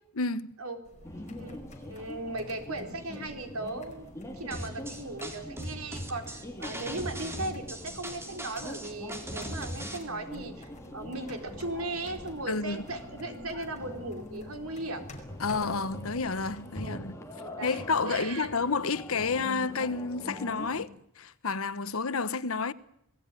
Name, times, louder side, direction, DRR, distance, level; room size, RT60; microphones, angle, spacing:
voice 1, 0.2-0.6 12.5-12.8 15.4-17.2 17.6-20.9 21.2-22.7, left 4 dB, 70° left, 1.1 m, -30 dB
sound 1, 0.8-16.6, left 1 dB, 35° left, 5.2 m, -52 dB
sound 2, 1.0-20.9, left 1 dB, 15° left, 3.2 m, -44 dB
voice 2, 1.1-1.6 1.9-15.0 16.8-17.0 17.3-18.5, right 2 dB, 75° right, 4.1 m, -37 dB
sound 3, 4.5-10.0, equal, 10° right, 3.8 m, -39 dB
27.0 x 18.5 x 9.8 m
head